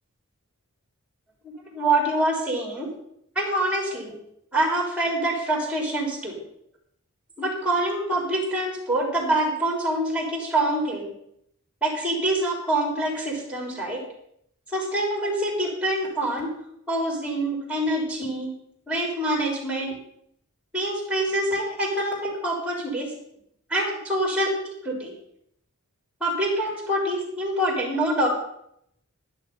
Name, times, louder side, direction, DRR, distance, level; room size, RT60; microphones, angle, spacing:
voice 1, 1.7-2.9 3.4-4.2 4.5-6.4 7.4-11.1 11.8-14.0 14.7-16.5 16.9-18.5 18.9-19.9 20.7-23.1 23.7-24.5 24.8-25.1 26.2-28.3, right 1 dB, 5° right, 1 dB, 3.5 m, -25 dB
11.5 x 10.5 x 5.6 m, 0.72 s
head